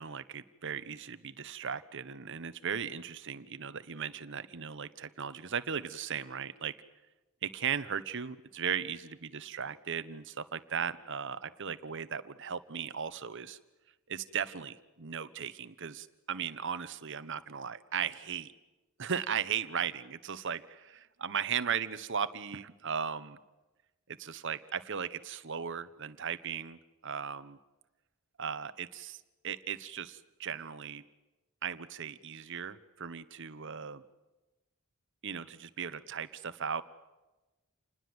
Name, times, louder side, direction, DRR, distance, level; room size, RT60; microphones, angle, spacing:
voice 1, 0.0-6.7 7.4-13.6 14.1-18.5 19.0-23.4 24.1-27.6 28.4-31.0 31.6-34.0 35.2-36.8, right 7 dB, 60° right, 13 dB, 1.1 m, -37 dB
28.0 x 20.0 x 8.0 m, 1.1 s
head